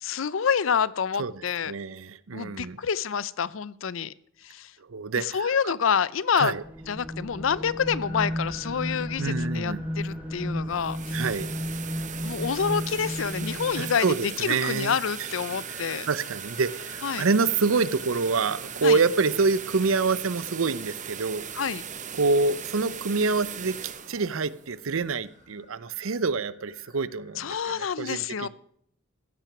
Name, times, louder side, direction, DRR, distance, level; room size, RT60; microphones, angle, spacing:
voice 1, 0.0-1.7 2.3-4.1 4.4-4.7 5.2-6.6 6.9-11.2 12.2-16.1 17.0-17.3 18.8-19.0 21.5-21.8 27.4-28.5, left 7 dB, 75° left, 0.5 m, -28 dB
voice 2, 1.2-2.8 4.9-5.7 6.3-6.6 9.2-9.8 11.1-11.5 13.7-15.3 15.7-21.4 22.1-23.8 24.1-28.5, right 4 dB, 85° right, 0.7 m, -27 dB
sound 1, 6.6-14.3, equal, 5° right, 1.1 m, -33 dB
sound 2, 8.0-27.8, left 3 dB, 40° left, 6.0 m, -52 dB
sound 3, 10.6-25.5, right 8 dB, 35° right, 1.0 m, -39 dB
15.5 x 9.1 x 6.0 m
head